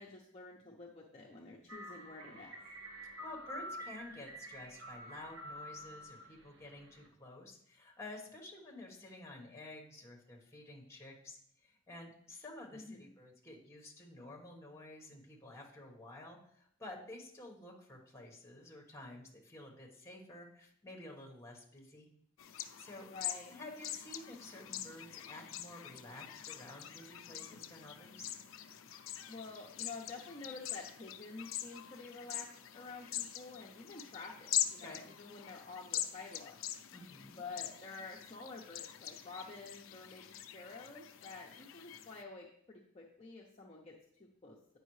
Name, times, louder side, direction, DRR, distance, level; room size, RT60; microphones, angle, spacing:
voice 1, 0.0-2.6 12.7-13.1 23.0-23.5 29.3-36.6 37.4-44.6, left 3 dB, 30° left, -2 dB, 0.7 m, -49 dB
sound 1, 1.7-7.1, equal, 65° right, 1.2 m, -48 dB
voice 2, 3.2-22.1 22.5-23.1 23.5-28.3 34.8-35.1 36.9-37.4, left 2 dB, 15° left, 0 dB, 1.3 m, -51 dB
sound 2, 22.4-42.2, left 12 dB, 85° left, 0.4 m, -43 dB
9.1 x 5.4 x 3.2 m, 0.66 s
head